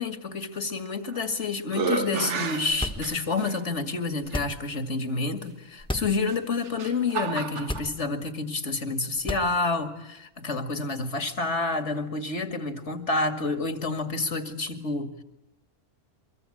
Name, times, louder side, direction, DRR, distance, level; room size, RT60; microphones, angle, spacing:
voice 1, 0.0-15.2, left 3 dB, 65° left, 9 dB, 2.6 m, -29 dB
sound 1, 0.9-1.3 1.7-3.5 4.3-4.4 6.2-7.9, right 5 dB, 65° right, 1.5 m, -32 dB
sound 2, 2.7-3.4 4.2-4.8 5.8-6.2 6.6-6.7 7.6-8.3 9.1-9.8, left 1 dB, 5° left, 1.4 m, -34 dB
24.5 x 23.5 x 8.7 m, 0.89 s
omnidirectional pair, 1.3 m